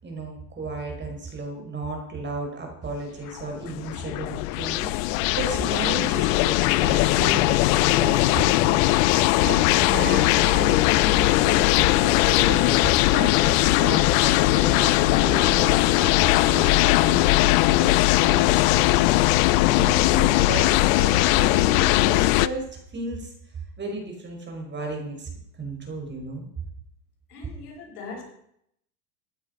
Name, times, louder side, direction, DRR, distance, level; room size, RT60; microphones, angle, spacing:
voice 1, 0.0-9.1 9.4-12.8 13.1-19.3 19.8-23.3 23.8-25.3 25.6-26.5, right 2 dB, 25° right, 2 dB, 5.3 m, -34 dB
sound 1, 3.4-22.5, left 18 dB, 60° left, 0.8 m, -20 dB
voice 2, 27.3-28.2, left 4 dB, 75° left, 0 dB, 6.4 m, -40 dB
15.5 x 11.0 x 5.3 m, 0.71 s
hypercardioid pair, 105°, 46 cm